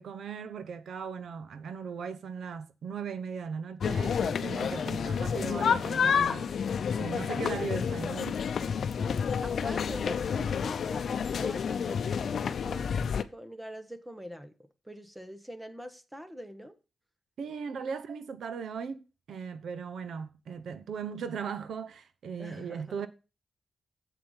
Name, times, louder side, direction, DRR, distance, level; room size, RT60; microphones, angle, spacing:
voice 1, 0.0-6.6 6.9-8.4 17.4-23.1, right 6 dB, 90° right, 0.8 m, -38 dB
sound 1, 3.8-13.2, left 7 dB, 65° left, 0.6 m, -29 dB
voice 2, 9.4-16.7 22.4-23.1, equal, 5° right, 1.1 m, -44 dB
7.7 x 7.5 x 5.7 m
wide cardioid pair, 145°, 0 cm